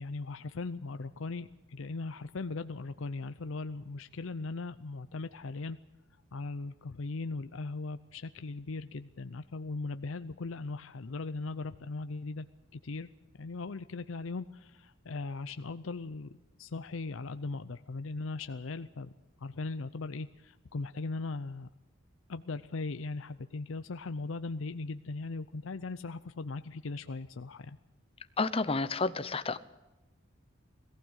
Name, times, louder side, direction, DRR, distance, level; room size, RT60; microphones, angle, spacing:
voice 1, 0.0-5.8 6.3-12.5 12.7-13.1 13.4-16.3 16.6-19.1 19.4-21.7 22.3-27.8, left 3 dB, 80° left, 11 dB, 0.6 m, -39 dB
voice 2, 28.4-29.6, left 3 dB, 30° left, 13 dB, 0.8 m, -30 dB
21.0 x 15.0 x 8.1 m, 1.0 s
head